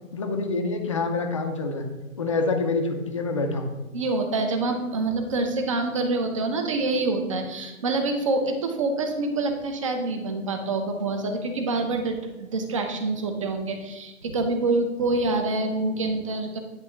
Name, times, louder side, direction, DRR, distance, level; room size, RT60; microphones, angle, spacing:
voice 1, 0.1-1.9 2.2-3.7, left 3 dB, 25° left, 5 dB, 0.5 m, -26 dB
voice 2, 3.9-16.6, right 2 dB, 25° right, 5 dB, 0.7 m, -26 dB
9.9 x 3.6 x 5.6 m, 1.1 s
hypercardioid pair, 155°, 42 cm